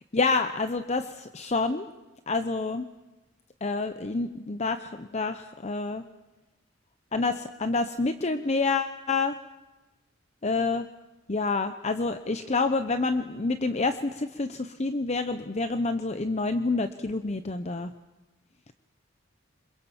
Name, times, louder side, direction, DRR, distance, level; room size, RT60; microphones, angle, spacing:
voice 1, 0.1-1.9 2.3-2.9 3.6-6.0 7.1-9.4 10.4-10.9 11.3-17.9, left 3 dB, 35° left, 9 dB, 0.8 m, -28 dB
26.5 x 22.5 x 7.2 m, 1.1 s
head